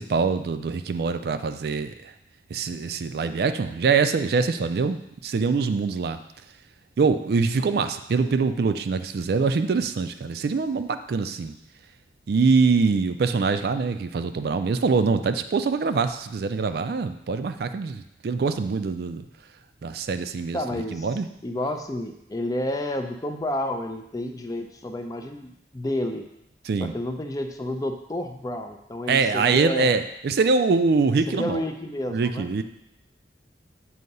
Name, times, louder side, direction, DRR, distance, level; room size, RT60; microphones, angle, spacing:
voice 1, 0.0-2.1 2.5-6.2 7.0-11.5 12.3-19.3 19.8-21.3 26.7-26.9 29.1-31.6 32.1-32.6, right 4 dB, 60° right, 9 dB, 0.4 m, -24 dB
voice 2, 20.5-21.1 21.4-26.2 26.8-30.0 31.3-32.5, left 1 dB, 20° left, 5 dB, 0.5 m, -30 dB
7.7 x 2.8 x 5.3 m, 0.80 s
head